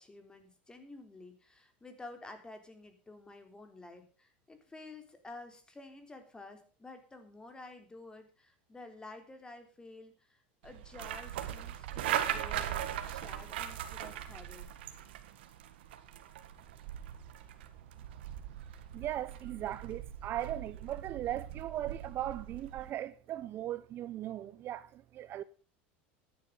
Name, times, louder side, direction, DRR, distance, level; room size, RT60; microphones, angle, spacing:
voice 1, 0.0-14.7, left 2 dB, 15° left, 3.5 m, -51 dB
sound 1, 10.6-22.9, right 11 dB, 80° right, 1.7 m, -40 dB
voice 2, 18.9-25.4, right 12 dB, 45° right, 0.7 m, -38 dB
14.0 x 10.5 x 5.1 m
supercardioid pair, 105°, 6 cm